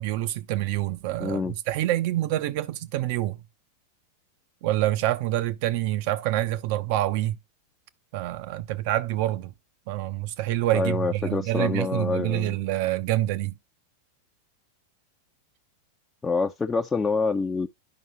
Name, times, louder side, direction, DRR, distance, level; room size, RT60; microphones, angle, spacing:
voice 1, 0.0-3.4 4.6-7.4 8.1-9.5 9.9-13.5, right 14 dB, 45° right, 0.7 m, -26 dB
voice 2, 1.2-1.5 10.7-12.6 16.2-17.7, left 4 dB, 15° left, 0.7 m, -26 dB
10.5 x 5.5 x 3.0 m
figure-of-eight pair, 90°, 0 cm